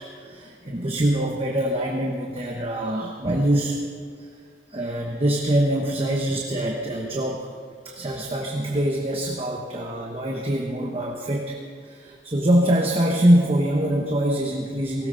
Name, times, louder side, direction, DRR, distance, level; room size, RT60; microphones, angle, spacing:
voice 1, 0.0-3.8 4.2-4.3 4.7-7.5 7.8-11.6 11.8-15.1, right 1 dB, 30° right, 0 dB, 1.1 m, -24 dB
19.0 x 17.0 x 3.9 m, 2.1 s
head